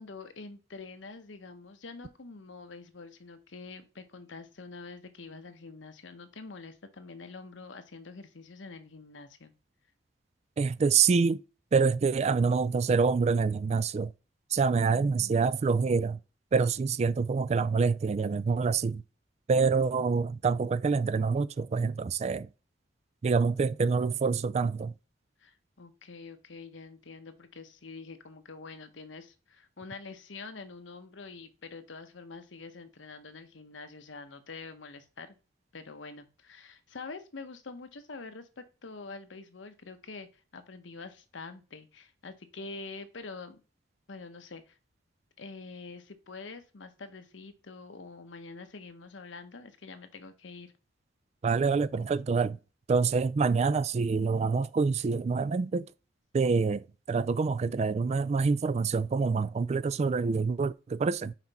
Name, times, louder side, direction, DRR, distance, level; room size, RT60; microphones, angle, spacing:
voice 1, 0.0-9.5 14.8-15.5 25.4-35.4 35.7-43.6 44.1-44.8 45.4-50.7, left 4 dB, 85° left, 0.9 m, -46 dB
voice 2, 10.6-11.4 11.7-14.1 14.5-16.2 16.5-19.0 19.5-22.5 23.2-24.9 51.4-52.6 52.9-55.9 56.3-56.8 57.1-61.3, right 5 dB, 35° right, 0.3 m, -26 dB
5.8 x 4.5 x 4.1 m
head